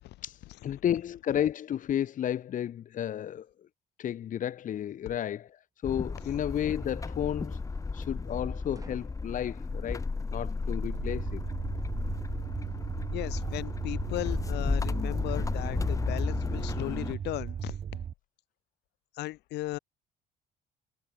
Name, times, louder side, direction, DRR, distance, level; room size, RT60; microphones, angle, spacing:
voice 1, 0.2-3.5 4.0-7.6 7.9-10.0 10.3-11.4, left 10 dB, 50° left, 1.2 m, -32 dB
sound 1, 4.7-4.9 6.8-7.1 8.7-9.2, right 3 dB, 20° right, 7.5 m, -51 dB
sound 2, 5.8-17.1, left 4 dB, 20° left, 1.3 m, -33 dB
sound 3, 10.8-18.1, right 8 dB, 45° right, 1.6 m, -37 dB
voice 2, 13.1-17.8 19.2-19.8, left 17 dB, 80° left, 5.6 m, -36 dB
cardioid pair, 110°, 17 cm